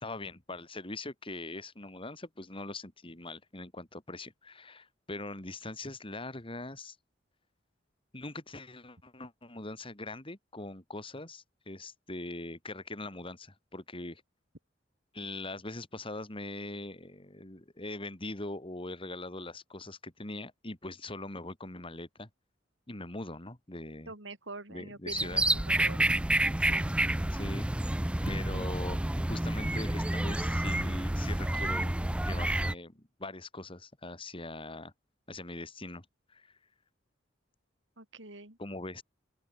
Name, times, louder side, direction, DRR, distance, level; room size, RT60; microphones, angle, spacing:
voice 1, 0.0-7.0 8.1-14.2 15.1-22.3 22.9-24.1 24.7-25.4 25.8-25.9 27.3-27.7 28.2-32.0 32.2-34.9 35.3-36.5 38.6-39.0, left 2 dB, 30° left, 3.1 m, -42 dB
voice 2, 24.1-26.0 26.7-26.9 28.5-28.7 38.0-38.6, right 2 dB, 75° right, 5.4 m, -45 dB
sound 1, 25.1-32.7, right 1 dB, 5° right, 0.4 m, -29 dB
open air
head